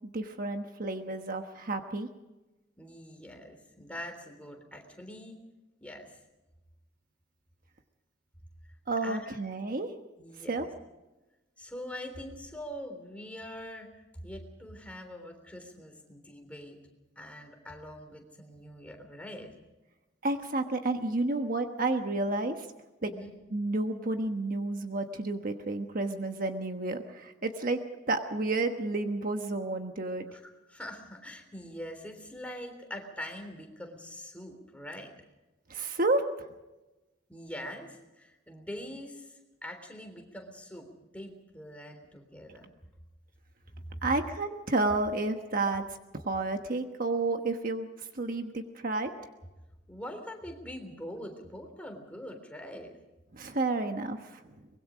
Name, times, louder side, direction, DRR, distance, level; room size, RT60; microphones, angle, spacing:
voice 1, 0.1-2.1 8.9-9.9 10.5-10.7 20.2-22.7 23.0-23.1 23.5-27.8 28.1-30.3 35.7-36.5 44.0-45.8 46.2-49.1 53.3-54.5, right 2 dB, 45° right, 6 dB, 1.2 m, -31 dB
voice 2, 2.8-5.4 5.8-6.2 9.0-9.4 10.2-10.7 11.6-16.8 17.2-19.5 23.0-23.3 30.3-30.4 30.7-35.1 37.3-40.9 41.1-42.6 43.7-44.0 49.1-49.3 49.9-52.9, equal, 5° left, 3 dB, 3.5 m, -43 dB
24.0 x 21.5 x 5.1 m, 1.1 s
head